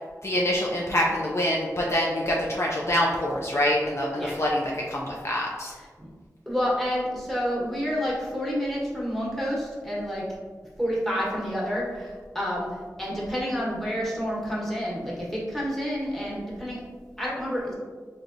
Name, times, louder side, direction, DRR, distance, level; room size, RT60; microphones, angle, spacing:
voice 1, 0.2-5.7, left 1 dB, 45° left, -3 dB, 0.4 m, -25 dB
voice 2, 6.5-10.3 10.8-16.8 17.2-17.8, equal, 5° left, -6 dB, 1.1 m, -29 dB
3.3 x 2.7 x 2.5 m, 1.5 s
cardioid pair, 40°, 7 cm